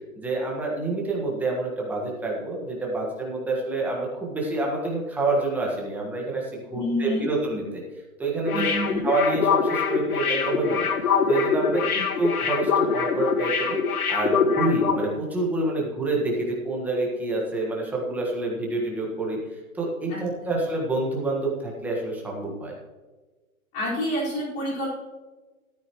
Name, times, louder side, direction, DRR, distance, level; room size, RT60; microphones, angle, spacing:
voice 1, 0.2-7.8 8.2-10.9 11.3-11.9 12.2-22.8, right 2 dB, 5° right, -2 dB, 1.5 m, -27 dB
voice 2, 6.7-7.3 8.5-9.1 20.1-20.5 23.7-24.9, equal, 20° left, -6 dB, 4.9 m, -28 dB
sound 1, 8.5-15.1 15.4-15.5, left 6 dB, 85° left, 1.7 m, -24 dB
14.5 x 13.0 x 3.1 m, 1.3 s
hypercardioid pair, 160°, 43 cm